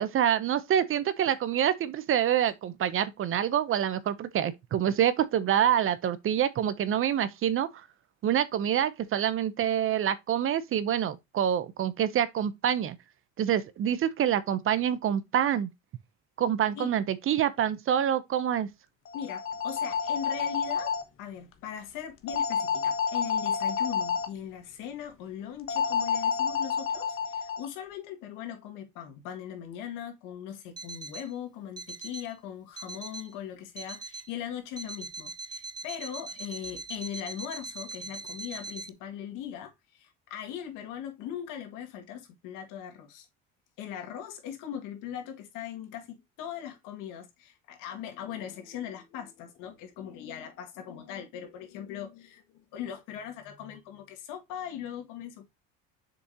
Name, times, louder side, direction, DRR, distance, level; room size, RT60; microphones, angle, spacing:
voice 1, 0.0-7.7 8.2-13.0 13.4-15.7 16.4-18.7, right 10 dB, 40° right, 0.8 m, -26 dB
voice 2, 19.1-43.3 43.8-55.5, left 9 dB, 80° left, 2.2 m, -40 dB
sound 1, 19.1-21.0 22.3-24.3 25.7-27.7, left 6 dB, 45° left, 1.3 m, -29 dB
Alarm, 30.8-31.3 31.8-32.3 32.8-33.3 33.8-34.3 34.8-38.9, right 3 dB, 15° right, 0.5 m, -41 dB
6.8 x 5.2 x 2.9 m
cardioid pair, 125°, 31 cm